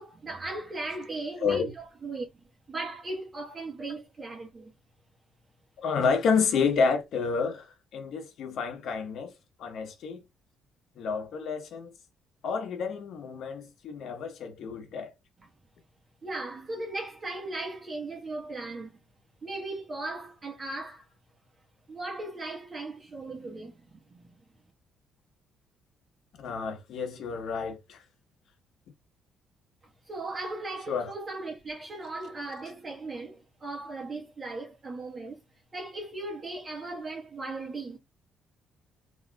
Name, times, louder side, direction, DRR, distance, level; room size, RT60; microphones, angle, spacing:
voice 1, 0.0-2.3 2.7-4.7 16.2-19.0 19.4-21.1 21.9-24.2 30.1-35.4 35.7-38.0, right 2 dB, 35° right, 1.2 m, -37 dB
voice 2, 5.8-9.3 9.6-10.2 11.0-11.9 12.4-15.1 26.4-28.0 30.9-31.1, left 5 dB, 70° left, 0.9 m, -29 dB
3.6 x 2.7 x 2.3 m
cardioid pair, 85°, 0 cm